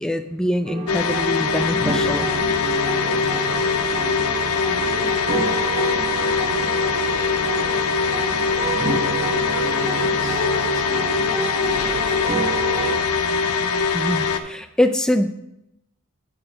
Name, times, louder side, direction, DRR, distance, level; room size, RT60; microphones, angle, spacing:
voice 1, 0.0-2.3 13.9-15.3, left 1 dB, 5° left, 8 dB, 0.4 m, -23 dB
sound 1, 0.6-13.0, right 2 dB, 30° right, 1.4 m, -29 dB
sound 2, 0.9-14.4, left 5 dB, 85° left, 0.6 m, -22 dB
voice 2, 3.0-3.7 4.7-8.3 9.5-13.5, right 3 dB, 60° right, 4 dB, 0.9 m, -39 dB
9.9 x 6.6 x 3.0 m, 0.84 s
head